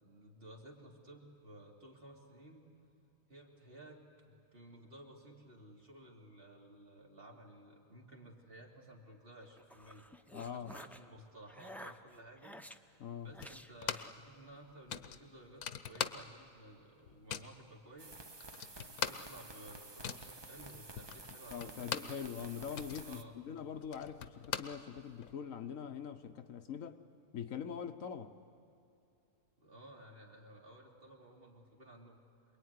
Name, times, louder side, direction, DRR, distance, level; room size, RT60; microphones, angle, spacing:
voice 1, 0.0-2.7 3.3-10.1 10.5-12.6 13.2-18.2 18.7-22.2 23.0-23.4 29.6-32.2, right 1 dB, 40° right, -1 dB, 3.1 m, -55 dB
sound 1, 9.4-11.0 11.5-12.8 13.3-14.1, equal, ahead, 0.4 m, -52 dB
voice 2, 10.3-10.7 13.0-13.3 21.5-27.0 27.3-28.3, left 7 dB, 65° left, 8 dB, 1.2 m, -43 dB
sound 2, 13.4-14.2 14.5-14.6 14.9-16.6 16.9-17.6 18.1-18.2 18.4-22.2 22.6-25.3, left 9 dB, 90° left, 1.3 m, -42 dB
sound 3, 18.0-23.2, right 2 dB, 25° right, 0.7 m, -51 dB
26.0 x 21.5 x 9.6 m, 2.8 s
omnidirectional pair, 1.5 m